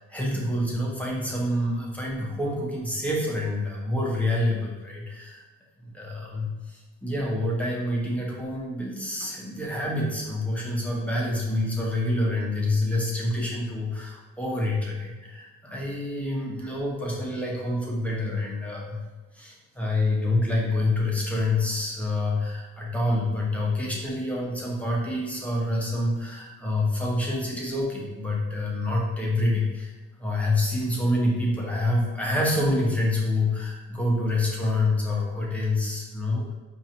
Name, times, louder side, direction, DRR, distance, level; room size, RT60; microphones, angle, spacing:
voice 1, 0.0-5.4 5.8-19.0 19.3-29.9 30.2-36.5, left 1 dB, 5° left, -4 dB, 1.0 m, -27 dB
4.7 x 2.7 x 2.9 m, 1.2 s
cardioid pair, 90°, 30 cm